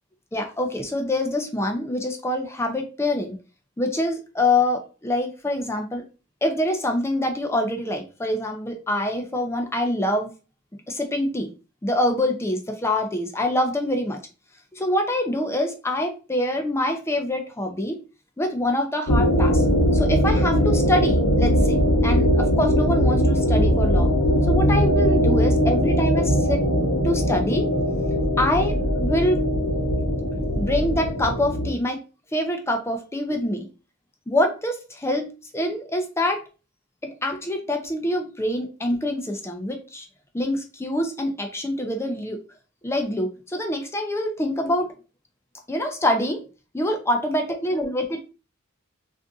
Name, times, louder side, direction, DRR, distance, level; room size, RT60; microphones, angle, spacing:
voice 1, 0.3-3.4 3.8-6.0 6.4-10.3 10.9-11.5 11.8-14.2 14.7-18.0 18.4-19.6 19.9-24.1 24.5-27.7 28.4-29.4 30.6-32.0 32.3-33.7 34.3-36.4 37.0-40.1 40.3-42.4 42.8-44.9 45.7-46.4 46.7-48.3, left 1 dB, 10° left, 4 dB, 0.4 m, -25 dB
sound 1, 19.1-31.7, equal, 55° left, 0.9 m, -20 dB
2.6 x 2.5 x 3.5 m, 0.33 s
head